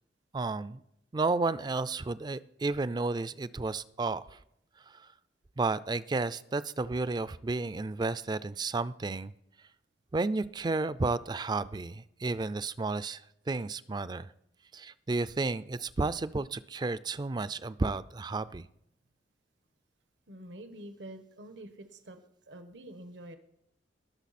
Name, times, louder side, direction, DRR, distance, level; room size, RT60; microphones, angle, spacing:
voice 1, 0.3-0.8 1.1-4.4 4.9-5.1 5.6-9.3 10.1-13.2 13.5-14.3 14.7-18.7, right 3 dB, 25° right, 16 dB, 0.4 m, -32 dB
voice 2, 20.3-22.2 22.5-23.4, right 1 dB, 85° right, 8 dB, 1.2 m, -47 dB
19.5 x 6.6 x 4.2 m, 0.75 s
head